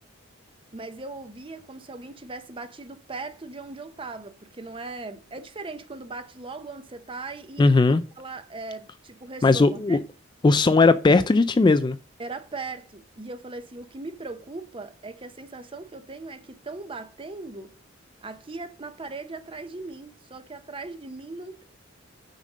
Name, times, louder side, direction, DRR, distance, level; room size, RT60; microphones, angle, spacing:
voice 1, 0.7-7.7 8.2-10.0 12.2-17.7 18.2-21.6, right 3 dB, 25° right, 0.7 m, -39 dB
voice 2, 7.6-8.0 9.4-10.0 10.4-12.0, left 3 dB, 20° left, 0.3 m, -18 dB
6.3 x 5.2 x 6.4 m
head